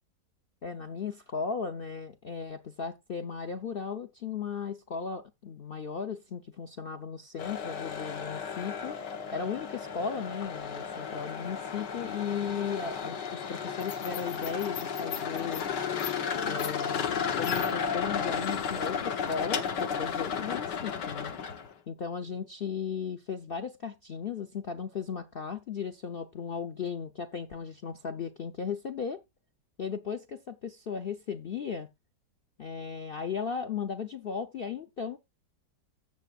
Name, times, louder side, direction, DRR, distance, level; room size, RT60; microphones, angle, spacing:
voice 1, 0.6-9.0 9.3-15.7 16.4-21.3 21.9-29.2 29.8-31.9 32.6-35.2, left 6 dB, 55° left, 0.6 m, -36 dB
sound 1, 7.4-21.7, left 7 dB, 75° left, 1.7 m, -33 dB
15.5 x 6.9 x 2.4 m
omnidirectional pair, 1.9 m